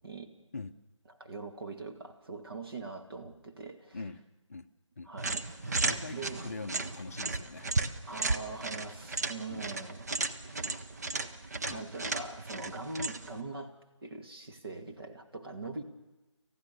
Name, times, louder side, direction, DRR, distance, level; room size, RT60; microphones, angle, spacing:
voice 1, 1.2-4.0 5.1-5.4 6.1-6.4 8.0-10.1 11.7-13.8 14.0-15.8, right 3 dB, 50° right, 4 dB, 2.4 m, -42 dB
sound 1, 5.2-13.4, right 3 dB, 30° right, 0.9 m, -35 dB
voice 2, 5.6-7.7 9.5-9.7 11.6-11.8 12.6-12.8, left 3 dB, 30° left, 6 dB, 0.7 m, -43 dB
29.5 x 15.0 x 6.9 m, 1.1 s
figure-of-eight pair, 165°, 16 cm